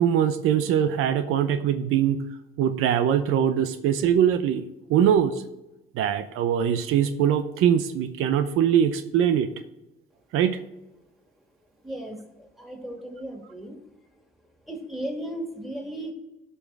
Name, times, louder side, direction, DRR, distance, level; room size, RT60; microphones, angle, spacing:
voice 1, 0.0-2.2 2.6-4.6 4.9-5.3 5.9-9.5 10.3-10.6, right 9 dB, 90° right, 10 dB, 0.7 m, -22 dB
voice 2, 11.8-13.8 14.7-16.1, right 1 dB, ahead, 2 dB, 2.5 m, -36 dB
11.5 x 5.5 x 4.7 m, 0.96 s
cardioid pair, 85°, 21 cm